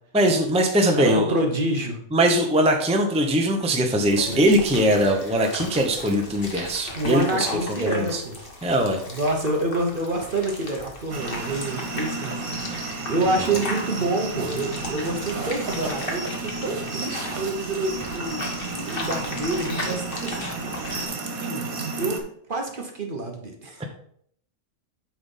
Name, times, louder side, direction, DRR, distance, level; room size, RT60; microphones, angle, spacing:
voice 1, 0.1-1.2 2.1-8.2 8.6-9.0 12.7-12.8, equal, 5° right, 2 dB, 0.8 m, -21 dB
voice 2, 1.0-2.0 6.9-8.4 9.1-20.4 21.4-21.7 22.0-22.2 22.5-23.8, right 2 dB, 40° right, 2 dB, 1.2 m, -27 dB
sound 1, 4.0-21.0, left 1 dB, 40° left, 1.7 m, -36 dB
sound 2, 11.1-22.2, right 3 dB, 90° right, 1.7 m, -32 dB
8.7 x 4.2 x 5.4 m, 0.65 s
omnidirectional pair, 1.4 m